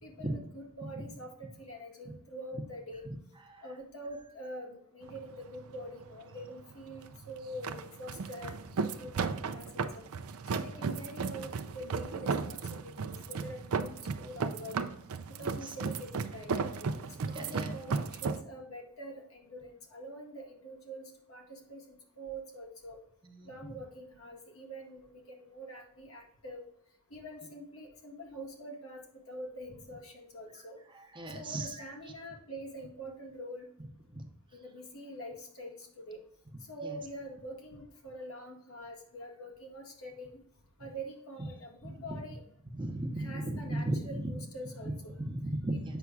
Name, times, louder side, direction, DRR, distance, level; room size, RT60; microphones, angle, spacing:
voice 1, 0.0-3.1 3.6-8.5 8.8-9.7 9.9-10.1 10.4-14.8 15.4-23.0 23.5-26.6 27.1-30.8 31.3-33.7 34.5-36.2 36.7-40.4 40.8-42.4 43.2-45.1, equal, 70° left, 0 dB, 1.7 m, -45 dB
sound 1, 5.0-18.4, right 5 dB, 80° right, 0.5 m, -35 dB
voice 2, 15.4-15.7 17.3-17.7 23.2-23.8 30.9-31.9 34.1-34.3 36.8-37.0 41.8-41.9 42.7-44.2 44.8-46.0, right 1 dB, 20° right, 3 dB, 0.8 m, -37 dB
8.1 x 5.9 x 2.4 m, 0.73 s
head